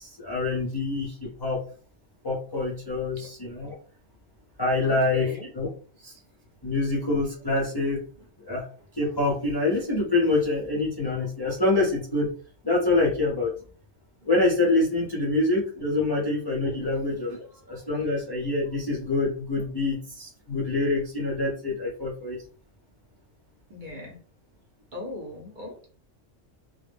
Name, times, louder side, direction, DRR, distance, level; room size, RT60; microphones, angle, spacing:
voice 1, 0.0-1.6 2.2-3.7 4.6-5.7 6.0-6.1 6.6-8.0 8.4-8.7 8.9-12.3 12.6-13.5 14.3-22.4, left 2 dB, 30° left, -4 dB, 0.5 m, -26 dB
voice 2, 4.8-5.5 17.7-17.8 23.7-24.2 24.9-25.9, left 2 dB, 50° right, -1 dB, 0.8 m, -39 dB
2.2 x 2.0 x 3.3 m, 0.41 s
omnidirectional pair, 1.3 m